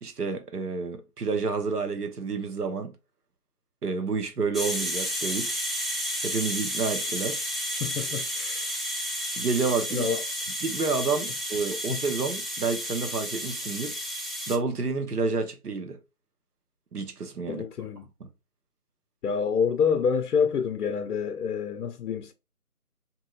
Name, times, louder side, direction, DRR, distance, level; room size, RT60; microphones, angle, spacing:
voice 1, 0.0-2.9 3.8-5.5 6.2-7.4 9.4-10.1 10.6-13.9 14.5-16.0 16.9-17.6, right 4 dB, 90° right, 0.9 m, -29 dB
sound 1, 4.5-14.6, equal, ahead, 0.3 m, -32 dB
voice 2, 7.7-8.7 9.9-10.2 17.5-18.1 19.2-22.3, left 6 dB, 90° left, 0.5 m, -27 dB
2.9 x 2.6 x 2.3 m
figure-of-eight pair, 180°, 45 cm